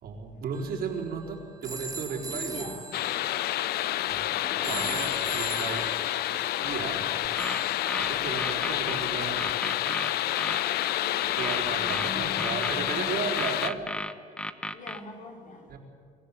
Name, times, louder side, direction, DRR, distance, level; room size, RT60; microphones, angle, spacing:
voice 1, 0.0-2.7 3.2-3.4 4.1-4.2 4.7-5.8 6.6-7.1 8.0-9.6 11.2-13.9 15.7-15.8, right 5 dB, 60° right, 0 dB, 4.1 m, -35 dB
sound 1, 0.5-8.6, right 3 dB, 20° right, 1.3 m, -42 dB
voice 2, 2.1-3.0 4.3-5.8 8.1-8.5 11.0-13.4 14.7-15.7, left 3 dB, 50° left, 2 dB, 4.5 m, -42 dB
sound 2, 2.9-13.7, left 14 dB, 70° left, 0.6 m, -29 dB
sound 3, 7.2-9.0 9.4-10.6 11.4-13.0 13.4-15.0, left 1 dB, 5° left, 1.0 m, -34 dB
24.5 x 15.0 x 8.5 m, 2.3 s
cardioid pair, 110°, 17 cm